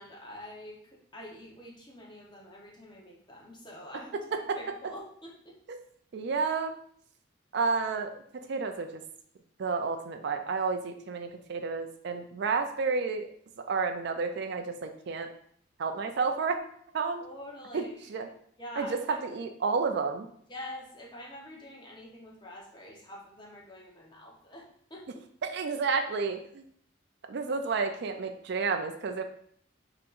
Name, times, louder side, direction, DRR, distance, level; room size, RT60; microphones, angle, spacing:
voice 1, 0.0-5.6 17.2-18.3 18.6-19.2 20.5-25.3, left 1 dB, 25° left, -2 dB, 0.8 m, -46 dB
voice 2, 6.1-6.7 7.5-8.9 9.6-13.3 13.7-15.3 15.8-16.6 16.9-17.2 17.7-17.8 18.1-18.3 18.8-20.3 25.4-26.6 27.3-29.2, right 4 dB, 55° right, 7 dB, 0.4 m, -30 dB
5.7 x 2.9 x 2.5 m, 0.63 s
head